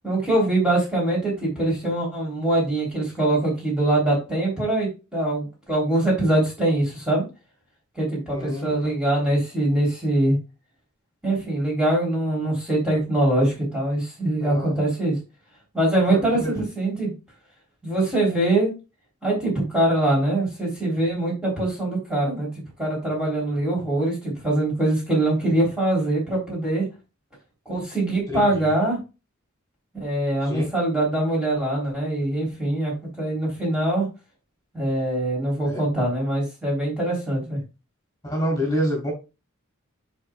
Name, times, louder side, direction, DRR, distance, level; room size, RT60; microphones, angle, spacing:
voice 1, 0.0-7.2 7.9-10.4 11.2-15.1 15.7-17.1 17.8-18.7 19.2-22.5 22.8-26.8 27.6-29.0 29.9-34.1 34.7-37.6, right 1 dB, 5° right, -5 dB, 3.4 m, -23 dB
voice 2, 8.3-8.9 14.4-14.8 16.1-16.6 28.3-28.7 30.4-30.6 35.6-35.8 38.2-39.1, equal, 20° left, -3 dB, 3.4 m, -28 dB
10.0 x 4.7 x 2.3 m, 0.28 s
head